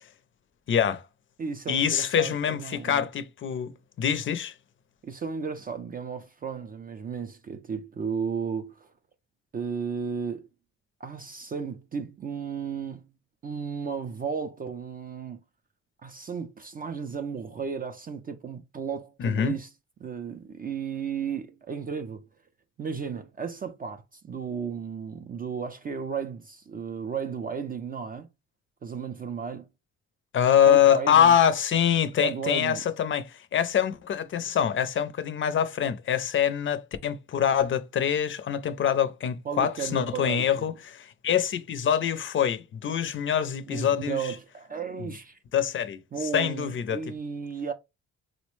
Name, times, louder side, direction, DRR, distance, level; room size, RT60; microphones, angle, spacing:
voice 1, 0.7-1.0 1.7-4.5 19.2-19.6 30.3-44.2 45.0-45.1 45.5-46.0 46.3-47.0, left 9 dB, 40° left, 0.5 m, -24 dB
voice 2, 1.4-3.1 5.0-8.9 9.5-10.5 11.0-13.0 13.4-15.4 16.0-19.7 20.0-22.2 22.8-28.3 28.8-29.7 30.7-31.3 32.2-32.8 39.5-40.5 43.7-45.4 46.1-47.7, right 6 dB, 30° right, 0.3 m, -34 dB
3.9 x 2.1 x 3.0 m
cardioid pair, 90°, 30 cm